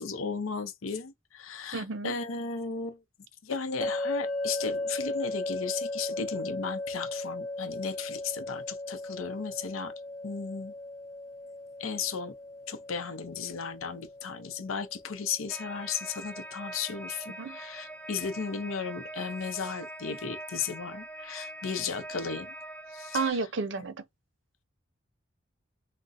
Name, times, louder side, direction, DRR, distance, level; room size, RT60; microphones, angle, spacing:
voice 1, 0.0-3.0 3.4-9.9 10.2-10.7 11.8-12.3 12.7-22.5 22.9-23.4 23.8-23.9, left 5 dB, 90° left, 0.6 m, -35 dB
voice 2, 1.7-2.1 17.4-17.6 23.1-23.9, right 4 dB, 65° right, 0.5 m, -31 dB
sound 1, 3.8-16.9, left 2 dB, 40° left, 0.7 m, -37 dB
sound 2, 15.5-23.3, right 1 dB, 5° left, 0.4 m, -43 dB
4.0 x 2.0 x 2.4 m
head